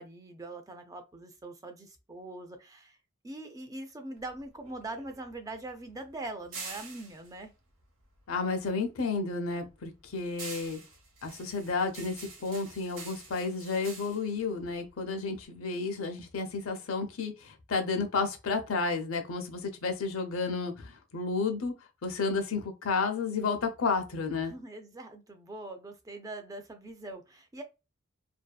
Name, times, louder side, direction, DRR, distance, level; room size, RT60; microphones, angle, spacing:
voice 1, 0.0-3.0 3.2-7.5 24.4-27.6, right 2 dB, 15° right, 0.3 m, -42 dB
sound 1, 4.2-8.7 9.0-15.4, right 4 dB, 75° right, 0.8 m, -47 dB
voice 2, 8.3-10.8 11.2-21.7 22.0-24.5, left 4 dB, 90° left, 0.6 m, -32 dB
2.6 x 2.3 x 2.3 m
head